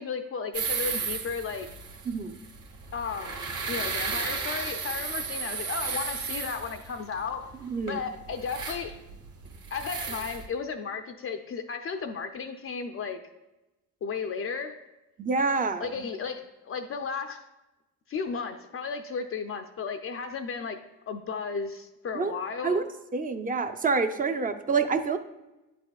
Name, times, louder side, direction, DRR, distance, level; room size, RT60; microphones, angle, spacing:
voice 1, 0.0-1.7 2.9-3.4 3.7-7.5 7.9-8.9 9.7-13.2 14.0-14.8 15.8-17.5 18.1-22.8, left 5 dB, 35° left, 7 dB, 0.5 m, -34 dB
sound 1, 0.5-10.5, right 5 dB, 50° right, 1.1 m, -34 dB
voice 2, 2.1-2.4 7.7-8.0 15.2-15.9 22.1-22.3 22.6-22.8 23.1-25.2, right 4 dB, 25° right, 7 dB, 0.5 m, -27 dB
9.6 x 4.2 x 2.3 m, 1.0 s
supercardioid pair, 75°, 37 cm